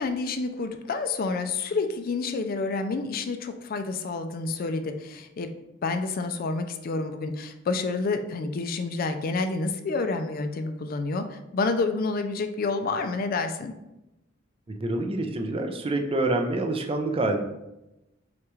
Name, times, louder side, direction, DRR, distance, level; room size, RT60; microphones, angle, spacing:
voice 1, 0.0-5.5 5.8-11.2 11.5-13.7, left 3 dB, 50° left, 8 dB, 0.4 m, -29 dB
voice 2, 14.7-17.4, right 2 dB, 30° right, 4 dB, 0.4 m, -27 dB
5.9 x 2.4 x 3.0 m, 0.93 s
head